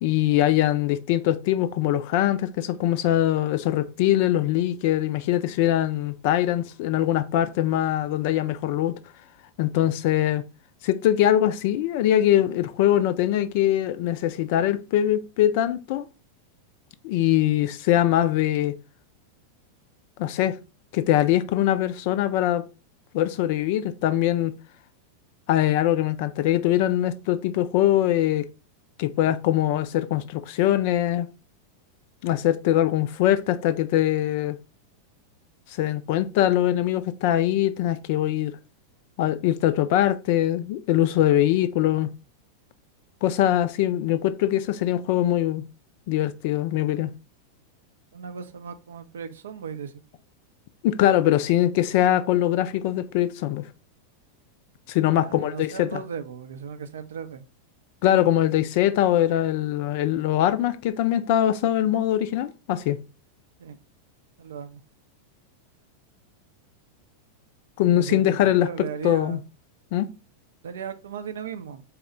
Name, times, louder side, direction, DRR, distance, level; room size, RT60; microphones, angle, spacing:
voice 1, 0.0-8.9 9.6-10.4 10.8-16.0 17.0-18.7 20.2-20.6 20.9-22.6 23.1-24.5 25.5-28.5 29.0-31.3 32.2-34.6 35.8-38.5 39.2-42.1 43.2-45.6 46.1-47.1 50.8-53.7 54.9-56.0 58.0-63.0 67.8-68.7 69.0-69.4 69.9-70.1, left 12 dB, 50° left, 0.3 m, -22 dB
voice 2, 48.1-49.9 55.2-57.4 63.6-63.8 64.4-64.8 67.9-69.4 70.6-71.8, right 6 dB, 65° right, 0.4 m, -36 dB
4.2 x 2.1 x 3.7 m
figure-of-eight pair, 90°, 0 cm